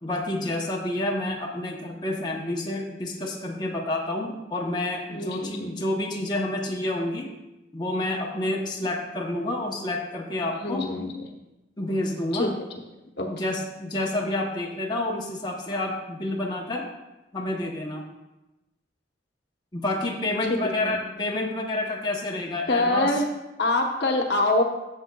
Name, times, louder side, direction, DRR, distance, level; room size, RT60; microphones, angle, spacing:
voice 1, 0.0-7.3 7.7-11.1 11.8-12.5 13.3-16.9 17.3-18.0 19.7-23.1, left 1 dB, 25° left, -2 dB, 0.8 m, -29 dB
voice 2, 5.1-5.7 10.6-11.2 12.3-12.5 13.2-13.3 20.4-20.5 20.8-21.0 22.7-23.3 23.6-24.6, left 2 dB, 60° left, 2 dB, 1.0 m, -25 dB
12.0 x 7.5 x 2.3 m, 1.0 s
head